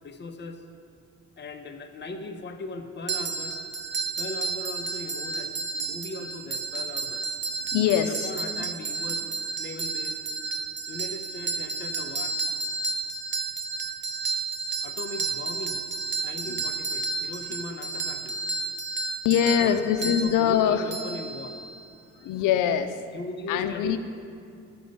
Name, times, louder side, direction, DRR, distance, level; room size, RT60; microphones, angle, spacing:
voice 1, 0.0-0.6 1.4-3.6 4.2-7.3 8.0-9.3 9.6-10.2 10.9-12.4 14.8-15.8 16.2-18.4 19.4-21.6 23.1-24.0, left 2 dB, 35° left, 5 dB, 1.0 m, -38 dB
sound 1, 3.1-21.9, right 3 dB, 35° right, 0.6 m, -32 dB
voice 2, 7.7-8.3 19.2-20.9 22.2-23.0 23.5-24.0, left 9 dB, 90° left, 8 dB, 0.5 m, -23 dB
13.5 x 5.2 x 5.4 m, 2.4 s
cardioid pair, 90°, 30 cm